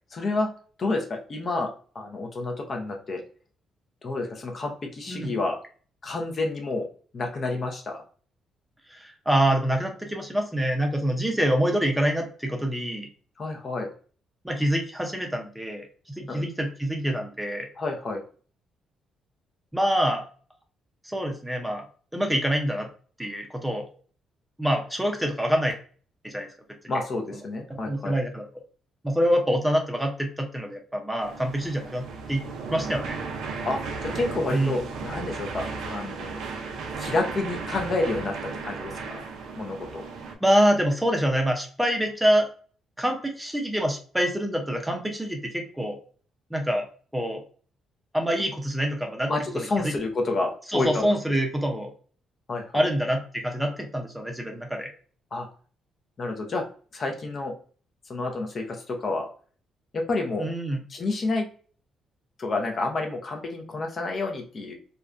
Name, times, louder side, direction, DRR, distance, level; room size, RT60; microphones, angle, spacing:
voice 1, 0.1-0.5 0.8-3.2 4.0-5.6 6.0-6.9 7.1-8.0 13.4-13.9 16.3-16.4 17.8-18.2 26.9-28.1 33.7-33.8 34.1-36.4 37.0-38.3 38.6-39.3 39.6-40.0 49.3-51.1 52.5-52.9 55.3-55.5 56.2-56.6 56.9-57.5 58.1-59.3 59.9-60.5 60.9-61.5 62.4-64.7, left 2 dB, 45° left, 2 dB, 0.6 m, -29 dB
voice 2, 8.9-13.1 14.4-17.7 19.7-20.2 21.0-21.8 22.1-22.9 23.2-23.8 24.6-25.8 26.2-26.5 27.7-28.5 29.0-32.4 32.7-33.1 34.5-34.7 40.4-42.5 43.0-45.9 46.5-46.8 47.1-47.4 48.1-49.9 50.7-51.9 52.7-54.9 60.4-60.8, equal, 5° right, 3 dB, 0.5 m, -26 dB
sound 1, 31.2-40.4, right 4 dB, 85° right, 0.4 m, -35 dB
2.5 x 2.2 x 2.4 m, 0.41 s
cardioid pair, 90°, 0 cm